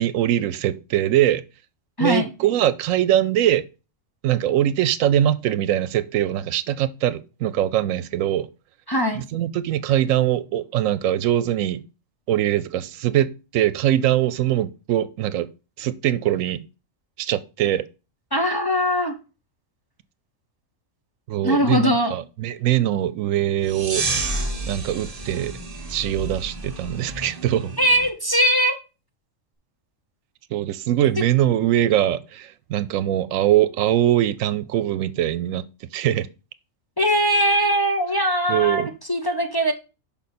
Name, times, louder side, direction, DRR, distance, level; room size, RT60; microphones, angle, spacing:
voice 1, 0.0-1.4 2.0-3.7 4.2-8.5 9.1-11.8 12.3-15.5 15.8-16.6 17.2-17.8 21.3-24.0 24.6-25.6 25.9-27.7 30.5-35.7 35.9-36.3 38.5-38.9, right 12 dB, 90° right, 1.0 m, -22 dB
voice 2, 8.9-9.2 18.3-19.2 21.4-22.1 27.8-28.7 37.0-38.8 39.1-39.7, equal, 25° left, 0.6 m, -20 dB
sound 1, 23.6-28.1, right 2 dB, 30° right, 1.0 m, -30 dB
5.8 x 5.3 x 4.2 m
omnidirectional pair, 1.3 m